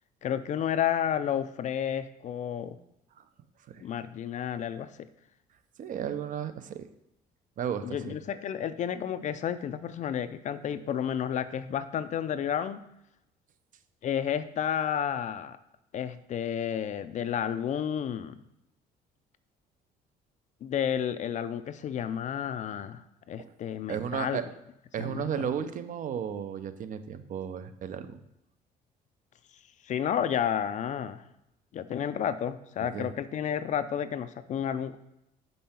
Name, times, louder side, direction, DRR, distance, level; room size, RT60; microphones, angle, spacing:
voice 1, 0.2-2.7 3.8-4.9 7.8-12.8 14.0-15.6 15.9-18.3 20.6-23.0 23.3-24.4 25.0-25.3 29.8-31.2 31.7-35.0, left 9 dB, 45° left, 12 dB, 0.4 m, -31 dB
voice 2, 5.8-6.9 7.6-8.2 23.4-23.5 23.9-24.5 24.9-28.2 32.8-33.1, right 8 dB, 50° right, 11 dB, 0.6 m, -34 dB
5.5 x 5.4 x 4.3 m, 0.84 s
cardioid pair, 110°, 17 cm